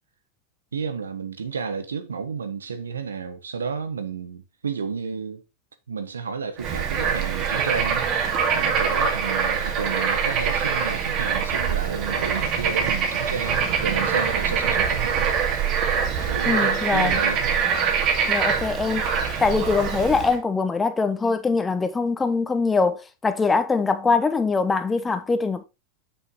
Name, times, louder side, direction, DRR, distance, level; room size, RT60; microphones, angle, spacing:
voice 1, 0.7-5.4 5.9-8.3 8.5-15.3 16.2-17.6, right 6 dB, 90° right, 1.2 m, -31 dB
Bird / Frog, 6.6-20.4, right 6 dB, 45° right, 2.2 m, -24 dB
voice 2, 16.4-17.2 18.3-19.1 19.4-25.6, left 4 dB, 15° left, 1.2 m, -23 dB
6.7 x 6.1 x 3.8 m
hypercardioid pair, 95°, 0 cm